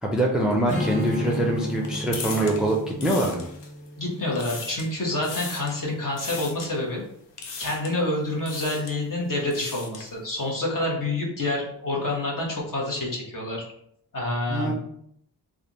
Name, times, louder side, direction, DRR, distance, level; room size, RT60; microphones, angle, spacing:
voice 1, 0.0-3.4 14.5-14.8, right 1 dB, ahead, -1 dB, 0.5 m, -24 dB
Strum, 0.7-6.0, left 1 dB, 15° left, 1.3 m, -33 dB
sound 1, 0.8-3.9 4.2-4.9 5.2-5.8 6.2-6.7 7.4-8.0 8.4-9.0 9.4-10.1, left 4 dB, 85° left, 0.7 m, -38 dB
voice 2, 4.0-7.0 7.6-13.6 14.1-14.8, left 2 dB, 50° left, -3 dB, 1.3 m, -28 dB
3.4 x 2.4 x 4.1 m, 0.70 s
wide cardioid pair, 100°, 42 cm